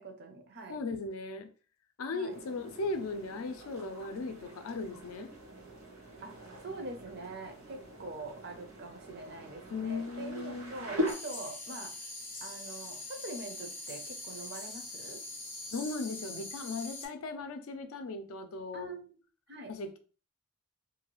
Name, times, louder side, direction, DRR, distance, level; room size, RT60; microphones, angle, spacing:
voice 1, 0.0-0.8 2.1-2.4 6.2-6.3 6.6-11.9 12.4-15.2 18.7-19.2 19.5-19.7, right 2 dB, 50° right, 0.6 m, -44 dB
voice 2, 0.7-1.5 2.0-5.3 9.7-10.9 15.7-18.9 19.7-20.0, left 3 dB, 75° left, 0.4 m, -37 dB
sound 1, 2.3-11.1, equal, 65° right, 0.9 m, -42 dB
sound 2, 11.1-17.1, left 2 dB, 10° left, 0.4 m, -43 dB
2.7 x 2.3 x 3.0 m
head